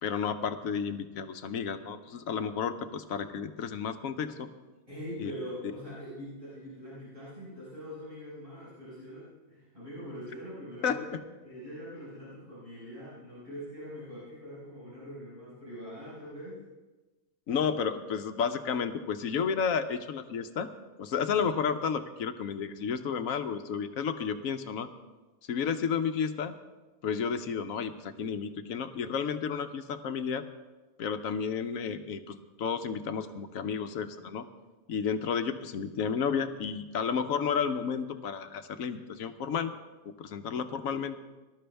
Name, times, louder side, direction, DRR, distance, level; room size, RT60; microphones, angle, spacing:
voice 1, 0.0-4.5 5.2-5.3 10.8-11.0 17.5-20.7 21.0-24.9 25.5-26.5 27.0-30.4 31.0-34.4 34.9-39.7 40.2-41.2, left 6 dB, 75° left, 9 dB, 1.2 m, -32 dB
voice 2, 4.9-16.6, equal, 35° right, -11 dB, 5.4 m, -43 dB
19.0 x 12.5 x 3.4 m, 1.2 s
omnidirectional pair, 1.4 m